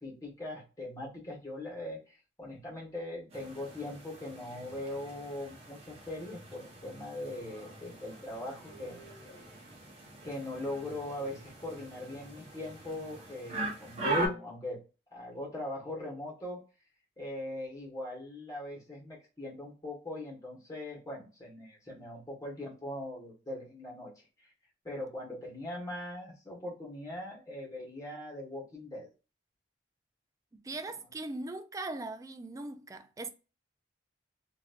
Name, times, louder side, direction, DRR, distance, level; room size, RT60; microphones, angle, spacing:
voice 1, 0.0-9.1 9.4-9.5 10.2-14.8 15.1-16.6 17.2-24.5 24.8-29.1, left 1 dB, 20° left, 1.4 m, -41 dB
sound 1, 3.3-14.3, right 1 dB, 35° right, 1.1 m, -40 dB
voice 2, 30.5-33.3, right 2 dB, 20° right, 0.3 m, -40 dB
3.1 x 2.7 x 2.5 m
head